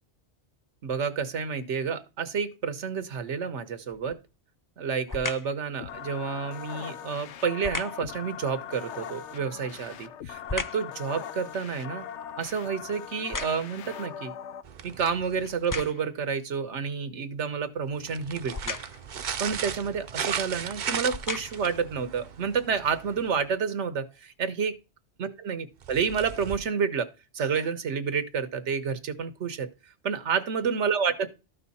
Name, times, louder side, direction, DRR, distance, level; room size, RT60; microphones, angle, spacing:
voice 1, 0.8-4.2 4.8-12.1 12.4-14.3 14.8-18.8 19.4-24.7 25.2-27.1 27.3-29.7 30.0-31.3, right 6 dB, 85° right, 1.3 m, -29 dB
sound 1, 3.9-4.3 5.1-5.6 7.6-8.1 9.5-10.9 11.4-13.9 14.6-14.7 15.5-16.2 18.5-19.1 20.1-20.3 20.9-21.8 22.4-22.5, left 3 dB, 30° left, 0.4 m, -36 dB
sound 2, 5.8-14.6, left 9 dB, 85° left, 1.0 m, -41 dB
sound 3, 14.6-15.9 17.9-23.5 25.8-26.6, right 7 dB, 50° right, 0.7 m, -36 dB
13.0 x 5.6 x 4.2 m
omnidirectional pair, 1.2 m